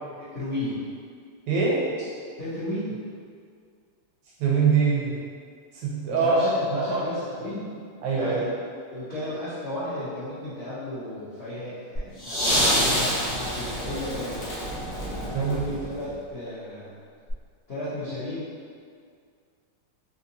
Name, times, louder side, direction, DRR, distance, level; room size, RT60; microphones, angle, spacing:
voice 1, 0.2-0.8 2.4-3.0 6.1-7.8 8.1-8.5 8.9-14.7 15.2-16.9 17.7-18.5, left 1 dB, 65° left, -13 dB, 0.6 m, -34 dB
voice 2, 1.5-1.8 4.4-5.2 5.7-6.4 6.7-7.0 8.0-8.5 14.8-15.0 15.3-15.7, right 5 dB, 75° right, -5 dB, 1.2 m, -23 dB
sound 1, 12.0-16.1 17.3-17.4, equal, 25° left, 0.8 m, -27 dB
3.7 x 2.7 x 2.6 m, 2.2 s
omnidirectional pair, 2.3 m